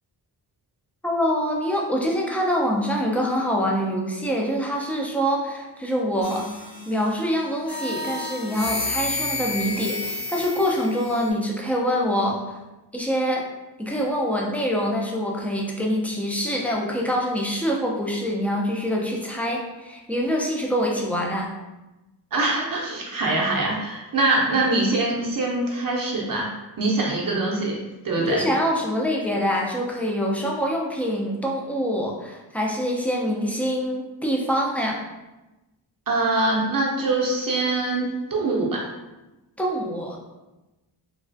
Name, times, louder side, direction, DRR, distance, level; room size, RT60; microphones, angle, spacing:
voice 1, 1.0-6.5 6.9-12.4 12.9-13.5 13.8-21.5 28.2-35.0 39.6-40.2, equal, 5° left, -1 dB, 0.4 m, -25 dB
sound 1, 6.2-7.1 7.6-11.3, left 2 dB, 55° left, 1.3 m, -31 dB
voice 2, 22.3-26.5 26.8-27.8 28.0-28.4 36.1-38.9, right 2 dB, 50° right, -3 dB, 0.7 m, -23 dB
3.2 x 2.3 x 2.5 m, 1.0 s
cardioid pair, 85°, 44 cm